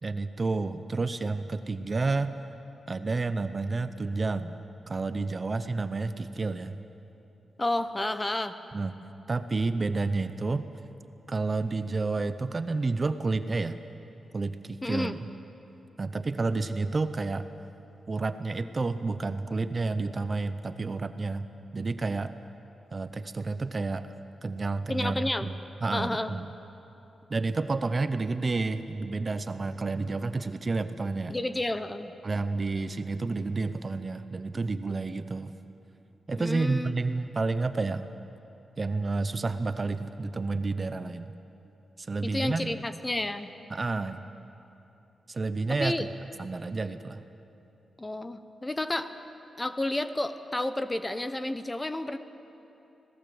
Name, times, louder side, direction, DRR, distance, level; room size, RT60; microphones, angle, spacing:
voice 1, 0.0-2.3 2.9-4.5 4.9-6.8 8.7-9.0 9.3-10.7 11.3-13.8 14.3-15.2 16.0-17.5 18.1-21.5 21.7-22.3 22.9-24.1 24.4-25.5 25.8-26.5 27.3-31.3 32.2-35.5 36.3-38.1 38.8-41.3 42.0-42.8 43.7-44.3 45.3-46.1 46.4-47.2, right 3 dB, 25° right, 11 dB, 0.6 m, -30 dB
voice 2, 7.6-8.6 14.8-15.2 24.9-25.5 25.9-26.3 31.3-32.1 36.4-37.2 42.2-43.5 45.8-46.0 48.0-49.1 49.6-52.2, left 1 dB, 15° left, 11 dB, 0.8 m, -31 dB
26.0 x 18.0 x 7.9 m, 2.9 s
wide cardioid pair, 175°, 0 cm